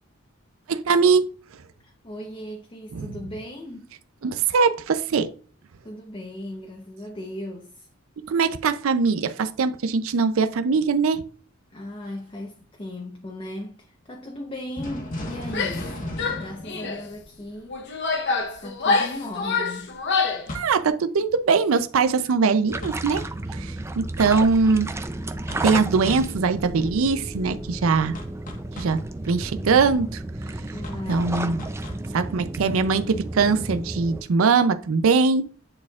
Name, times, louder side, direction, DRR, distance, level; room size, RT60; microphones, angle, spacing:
voice 1, 0.7-1.3 2.9-3.1 4.2-5.3 8.2-11.2 20.5-23.2 23.5-24.9 25.6-28.1 28.8-29.0 29.3-30.2 31.1-31.6 32.1-35.5, right 4 dB, 75° right, 0.5 m, -21 dB
voice 2, 1.8-3.9 5.8-7.9 11.7-16.0 16.4-17.8 18.6-20.0 30.7-31.7, left 1 dB, 25° left, 0.8 m, -37 dB
sound 1, 14.8-17.6 20.5-20.8 22.8-23.4 25.5-25.8 26.1-26.4 28.1-29.1 30.8-32.1, left 1 dB, 40° left, 1.3 m, -36 dB
Female speech woman speaking / Yell, 15.5-15.9 16.2-17.0 17.7-20.5, left 4 dB, 60° left, 0.8 m, -26 dB
sound 2, 22.7-34.2, right 2 dB, 15° right, 0.4 m, -32 dB
9.8 x 4.2 x 2.4 m
head